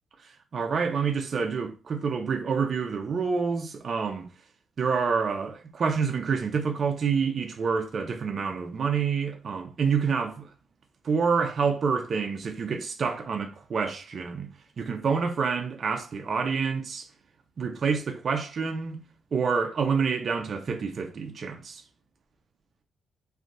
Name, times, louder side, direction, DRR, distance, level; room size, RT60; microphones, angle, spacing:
voice 1, 0.2-4.3 4.8-10.5 11.0-14.5 14.8-17.1 17.6-19.0 19.3-21.8, right 5 dB, 55° right, 0.5 m, -27 dB
3.3 x 2.6 x 2.5 m
cardioid pair, 90°, 0 cm